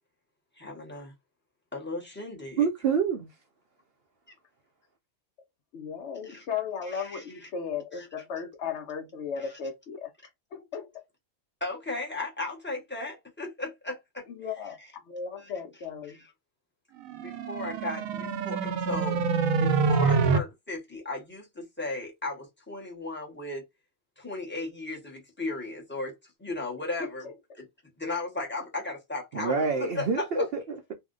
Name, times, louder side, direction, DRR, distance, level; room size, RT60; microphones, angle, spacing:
voice 1, 0.6-1.1 1.7-2.7 6.2-6.4 6.8-7.2 7.9-8.1 9.4-9.5 11.6-14.3 15.4-15.5 16.1-16.3 17.1-19.2 19.6-23.6 24.2-26.1 26.4-27.3 27.5-27.7 28.0-30.5, left 2 dB, 10° left, 0.7 m, -36 dB
voice 2, 2.6-3.3 29.3-30.9, right 5 dB, 65° right, 0.6 m, -27 dB
voice 3, 5.7-10.1 10.5-11.0 14.3-14.8 15.1-16.2 27.0-27.3, left 6 dB, 65° left, 0.8 m, -36 dB
sound 1, 17.1-20.4, right 5 dB, 85° right, 1.0 m, -26 dB
2.7 x 2.1 x 3.6 m
omnidirectional pair, 1.4 m